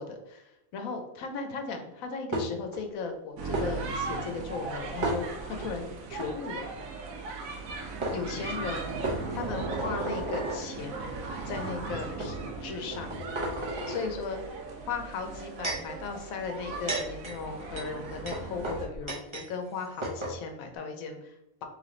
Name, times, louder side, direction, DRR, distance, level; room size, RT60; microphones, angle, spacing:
voice 1, 0.0-6.7 8.1-11.1 11.5-13.2 13.9-14.4 14.9-21.7, left 4 dB, 80° left, 5 dB, 1.1 m, -37 dB
sound 1, 2.3-2.8 3.5-3.7 5.0-5.7 6.1-6.3 7.6-7.7 8.0-8.2 9.0-10.6 11.4-11.6 12.2-12.3 12.9-14.0 15.1-15.9 16.6-19.5 19.7-19.8 20.0-20.4, right 1 dB, 30° right, 0.6 m, -33 dB
sound 2, 3.4-18.9, right 4 dB, 75° right, 1.1 m, -38 dB
3.4 x 3.0 x 3.8 m, 0.87 s
omnidirectional pair, 1.4 m